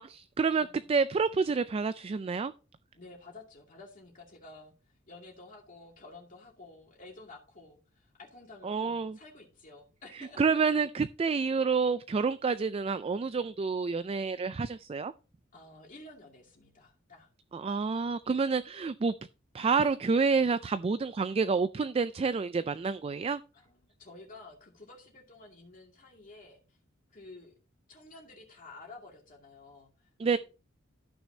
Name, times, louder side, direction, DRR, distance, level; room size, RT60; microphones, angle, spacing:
voice 1, 0.0-2.5 8.6-9.2 10.4-15.1 17.5-19.1 19.5-23.4 30.2-30.4, right 5 dB, 30° right, 0.3 m, -28 dB
voice 2, 0.6-0.9 2.9-4.7 5.1-10.6 15.5-17.3 23.5-26.6 27.1-27.5 27.9-29.9 30.2-30.4, left 2 dB, 40° left, 2.4 m, -51 dB
14.0 x 6.2 x 2.8 m
head